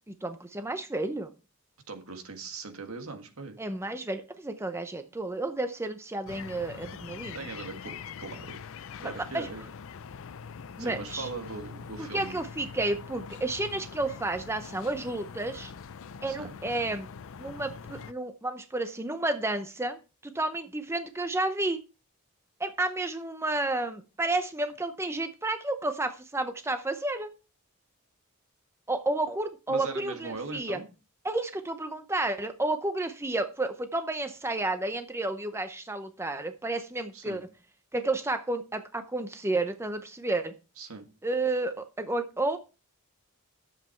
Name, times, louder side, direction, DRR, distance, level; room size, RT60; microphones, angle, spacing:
voice 1, 0.1-1.3 3.6-7.4 9.0-9.5 10.8-11.3 12.0-15.7 16.2-17.1 17.4-21.8 22.6-27.3 28.9-30.8 31.2-37.5 37.9-40.5 41.2-42.6, right 2 dB, 10° right, 8 dB, 0.7 m, -31 dB
voice 2, 1.9-3.6 7.3-8.6 9.0-9.6 10.8-12.4 16.3-16.5 29.7-30.9 37.1-37.4 40.8-41.1, right 4 dB, 70° right, 5 dB, 1.8 m, -40 dB
sound 1, 6.3-18.1, left 6 dB, 65° left, 0.5 m, -43 dB
10.5 x 7.6 x 4.5 m, 0.32 s
head